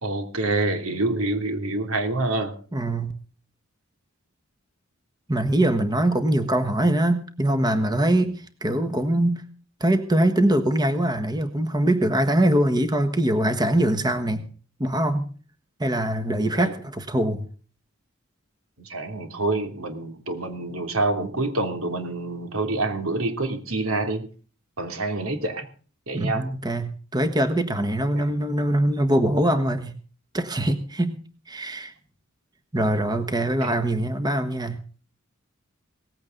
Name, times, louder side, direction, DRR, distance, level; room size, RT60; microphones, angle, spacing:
voice 1, 0.0-2.5 8.1-8.3 16.6-16.7 18.8-24.3 24.8-25.7 26.1-26.5 28.1-28.2 33.6-33.7, right 2 dB, 80° right, 6 dB, 3.1 m, -27 dB
voice 2, 2.7-3.1 5.3-8.3 8.6-9.4 9.8-14.4 14.8-15.3 15.8-17.5 26.1-29.9 30.3-31.2 31.5-31.9 32.7-34.8, right 1 dB, 20° right, 9 dB, 1.4 m, -23 dB
18.5 x 15.5 x 3.9 m, 0.41 s
head